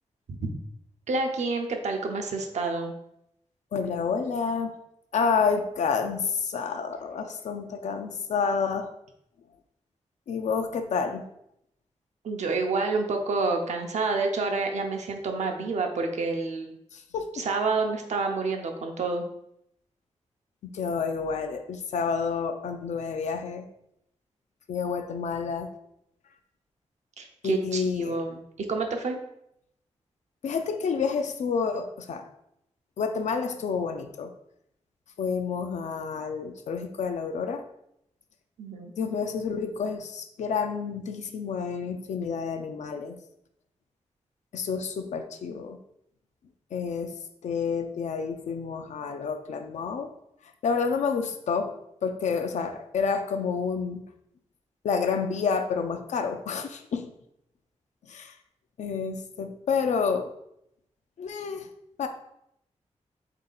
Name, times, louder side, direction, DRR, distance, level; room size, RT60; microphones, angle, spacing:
voice 1, 1.1-2.9 12.2-16.7 17.3-19.2 27.2-29.2 38.6-38.9, right 3 dB, 80° right, 3 dB, 0.6 m, -28 dB
voice 2, 3.7-4.7 5.1-8.9 10.3-11.2 16.9-17.4 20.6-23.7 24.7-25.7 27.4-28.2 30.4-32.3 33.0-34.3 35.2-37.6 39.0-43.2 44.5-45.8 46.7-47.1 47.4-50.1 50.6-51.8 52.0-54.0 54.8-57.1 58.1-58.3 58.8-60.3 61.2-61.7 62.0-62.1, left 5 dB, 85° left, 7 dB, 0.4 m, -29 dB
3.6 x 2.8 x 3.9 m, 0.78 s
wide cardioid pair, 90°, 12 cm